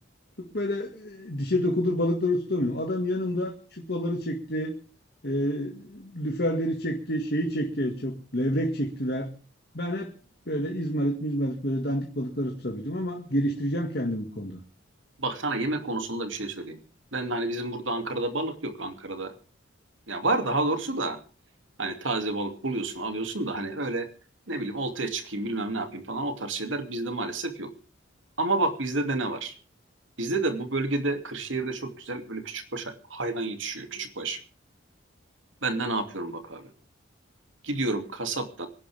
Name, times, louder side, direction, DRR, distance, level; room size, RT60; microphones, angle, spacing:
voice 1, 0.4-4.7 5.2-9.3 9.7-10.1 10.5-14.6, equal, 55° left, 3 dB, 2.2 m, -28 dB
voice 2, 15.2-16.8 17.1-19.3 20.1-21.2 21.8-24.1 24.5-27.7 28.4-29.5 30.2-34.4 35.6-36.7 37.6-38.7, right 2 dB, 85° right, 7 dB, 2.7 m, -30 dB
26.0 x 11.5 x 3.6 m, 0.40 s
head